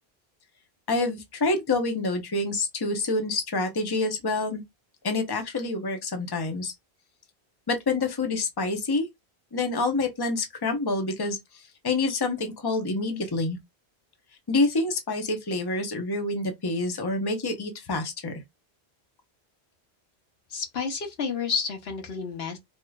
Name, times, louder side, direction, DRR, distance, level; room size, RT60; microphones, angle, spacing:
voice 1, 0.9-4.6 5.0-6.7 7.7-9.1 9.5-11.4 11.8-13.6 14.5-18.3, left 3 dB, 25° left, 0.8 m, -27 dB
voice 2, 20.5-22.6, left 5 dB, 75° left, 1.2 m, -30 dB
4.6 x 2.8 x 2.3 m
omnidirectional pair, 1.1 m